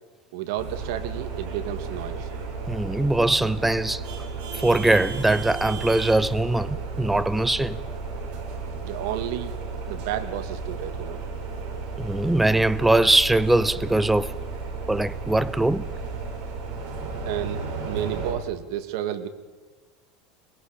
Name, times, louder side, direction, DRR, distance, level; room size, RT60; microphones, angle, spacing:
voice 1, 0.3-2.3 8.8-9.5 9.9-11.2 17.2-19.3, right 11 dB, 75° right, 2.0 m, -31 dB
sound 1, 0.6-18.3, right 4 dB, 50° right, 6.8 m, -33 dB
voice 2, 2.7-4.0 4.6-7.8 12.0-14.3 14.9-15.9, right 2 dB, 5° right, 0.7 m, -21 dB
23.0 x 22.0 x 5.2 m
supercardioid pair, 125°, 2 cm